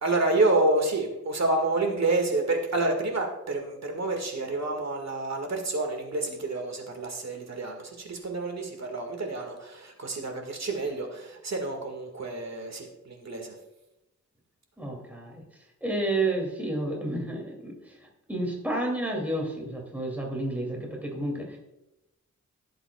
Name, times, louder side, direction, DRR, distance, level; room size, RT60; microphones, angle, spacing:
voice 1, 0.0-13.5, right 2 dB, 60° right, 3 dB, 1.8 m, -28 dB
voice 2, 14.8-15.4 15.8-17.9 18.3-21.6, right 2 dB, 5° right, -1 dB, 2.6 m, -30 dB
16.0 x 7.7 x 2.3 m, 0.91 s
wide cardioid pair, 95°, 31 cm